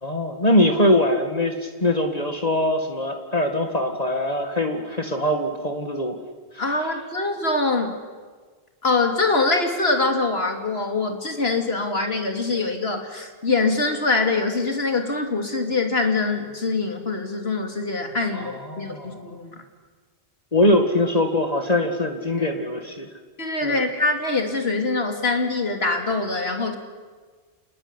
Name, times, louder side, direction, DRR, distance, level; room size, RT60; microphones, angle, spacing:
voice 1, 0.0-6.2 6.5-6.6 18.3-19.3 20.5-23.1 23.6-23.9, left 1 dB, 40° left, 4 dB, 2.2 m, -22 dB
voice 2, 6.6-8.0 8.8-19.6 22.4-22.5 23.4-26.8, left 3 dB, 75° left, 5 dB, 3.2 m, -24 dB
28.0 x 20.0 x 10.0 m, 1.5 s
omnidirectional pair, 1.0 m